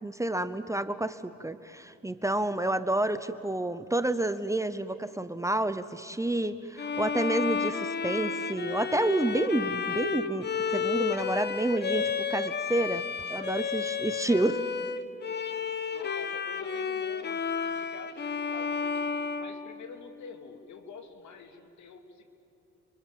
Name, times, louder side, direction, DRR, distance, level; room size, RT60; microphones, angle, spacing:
voice 1, 0.0-14.6, right 1 dB, 10° right, 12 dB, 0.8 m, -29 dB
Bowed string instrument, 6.8-20.2, left 5 dB, 35° left, 1.2 m, -32 dB
voice 2, 13.6-14.3 15.9-22.3, left 5 dB, 70° left, 6 dB, 2.5 m, -48 dB
30.0 x 24.0 x 7.3 m, 2.8 s
cardioid pair, 90°, 30 cm